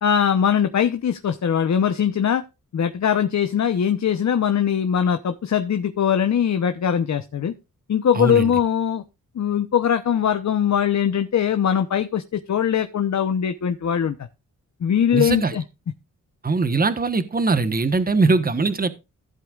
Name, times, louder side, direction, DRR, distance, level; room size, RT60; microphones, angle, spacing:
voice 1, 0.0-2.4 2.7-7.5 7.9-9.0 9.3-14.2 14.8-15.6, left 8 dB, 60° left, 9 dB, 0.9 m, -21 dB
voice 2, 8.1-8.5 15.1-15.6 16.4-18.9, right 3 dB, 30° right, 11 dB, 1.2 m, -21 dB
15.0 x 8.0 x 2.5 m, 0.27 s
cardioid pair, 85°, 32 cm